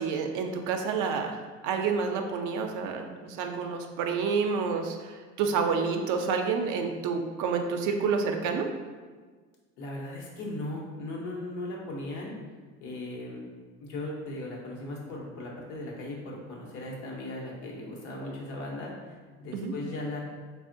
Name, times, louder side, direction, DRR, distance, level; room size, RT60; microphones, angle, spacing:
voice 1, 0.0-8.7 19.5-19.7, right 5 dB, 60° right, 4 dB, 0.5 m, -29 dB
voice 2, 9.8-12.3 12.8-13.4 13.8-20.2, left 2 dB, 80° left, -2 dB, 0.8 m, -37 dB
3.5 x 2.0 x 2.5 m, 1.5 s
hypercardioid pair, 75°, 34 cm